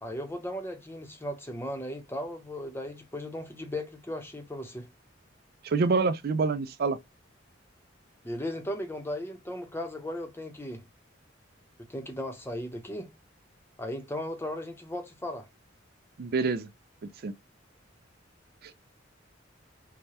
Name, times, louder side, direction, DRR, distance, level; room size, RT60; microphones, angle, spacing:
voice 1, 0.0-4.9 8.2-10.8 11.9-13.1 13.8-15.5, left 1 dB, 10° left, 0.7 m, -36 dB
voice 2, 5.6-7.0 16.2-16.7 17.2-17.3 18.6-18.7, right 4 dB, 55° right, 0.4 m, -26 dB
4.8 x 2.2 x 2.8 m
head